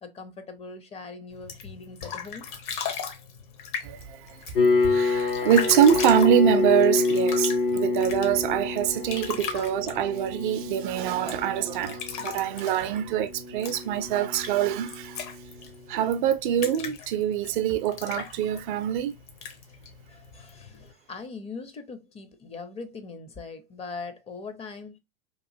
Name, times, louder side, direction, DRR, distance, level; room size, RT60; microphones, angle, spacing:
voice 1, 0.0-2.5 9.5-9.8 15.6-15.7 20.1-25.0, left 4 dB, 20° left, 0.5 m, -41 dB
sound 1, 1.3-20.9, left 6 dB, 55° left, 0.9 m, -38 dB
voice 2, 3.8-4.3 4.8-15.2 15.9-19.1, right 9 dB, 55° right, 0.4 m, -24 dB
sound 2, 4.5-15.6, left 3 dB, 75° left, 1.0 m, -28 dB
2.9 x 2.4 x 2.6 m
hypercardioid pair, 95°, 30 cm